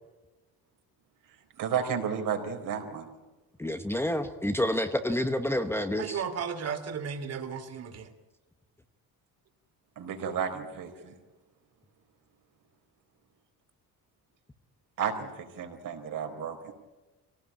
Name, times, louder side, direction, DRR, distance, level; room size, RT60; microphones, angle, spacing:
voice 1, 1.6-3.1 10.0-11.1 15.0-16.7, right 7 dB, 65° right, 4 dB, 4.3 m, -32 dB
voice 2, 3.6-6.2, left 1 dB, 5° left, 6 dB, 1.0 m, -29 dB
voice 3, 6.0-8.1, right 6 dB, 45° right, 8 dB, 2.7 m, -34 dB
24.5 x 18.0 x 8.8 m, 1.1 s
cardioid pair, 165°, 35 cm